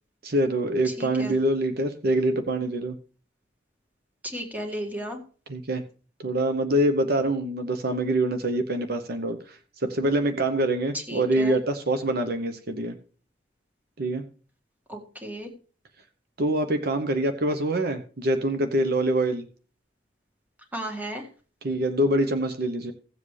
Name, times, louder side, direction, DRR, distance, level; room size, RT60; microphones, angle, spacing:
voice 1, 0.2-2.9 5.5-5.8 6.2-12.9 14.0-14.2 16.4-19.5 21.6-22.9, right 1 dB, 60° right, 7 dB, 0.8 m, -25 dB
voice 2, 0.8-1.4 4.2-5.2 10.9-11.6 14.9-15.5 20.7-21.3, equal, 10° right, 2 dB, 1.9 m, -34 dB
16.5 x 7.5 x 3.2 m, 0.40 s
head